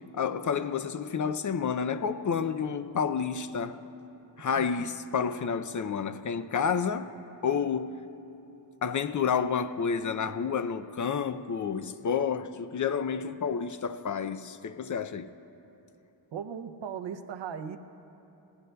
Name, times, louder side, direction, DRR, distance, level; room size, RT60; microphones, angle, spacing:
voice 1, 0.1-3.8 4.4-7.2 7.4-8.0 8.8-15.3, left 6 dB, 45° left, 0.5 m, -30 dB
voice 2, 16.3-17.8, right 7 dB, 80° right, 0.7 m, -37 dB
18.5 x 18.5 x 2.3 m
wide cardioid pair, 80°, 44 cm